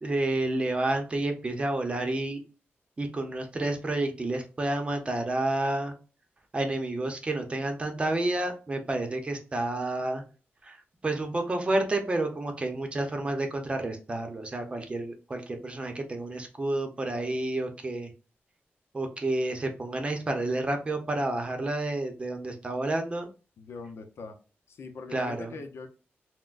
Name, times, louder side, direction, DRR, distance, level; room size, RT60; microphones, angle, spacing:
voice 1, 0.0-2.4 3.0-5.9 6.5-10.2 10.6-18.1 18.9-23.3 25.1-25.6, right 2 dB, 25° right, 5 dB, 0.7 m, -30 dB
voice 2, 23.6-24.4 24.7-25.9, left 4 dB, 75° left, 6 dB, 0.7 m, -42 dB
5.9 x 2.2 x 2.4 m, 0.35 s
wide cardioid pair, 150°, 4 cm